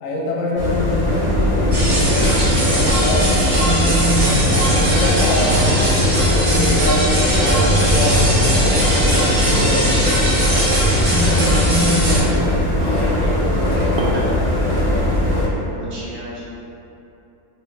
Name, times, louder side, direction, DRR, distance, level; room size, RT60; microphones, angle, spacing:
voice 1, 0.0-3.5 4.7-5.9 6.4-10.2, left 1 dB, 70° left, -3 dB, 0.9 m, -25 dB
sound 1, 0.6-15.5, left 1 dB, 25° left, 0.9 m, -19 dB
sound 2, 1.7-12.2, equal, 40° right, 0.7 m, -19 dB
sound 3, 2.0-2.2 2.6-7.7 8.3-13.3 14.0-14.4 15.0-15.2, right 2 dB, 80° right, 0.5 m, -36 dB
voice 2, 12.5-14.9 15.6-16.4, equal, 60° right, -10 dB, 1.4 m, -31 dB
3.1 x 2.9 x 3.1 m, 2.8 s
omnidirectional pair, 1.6 m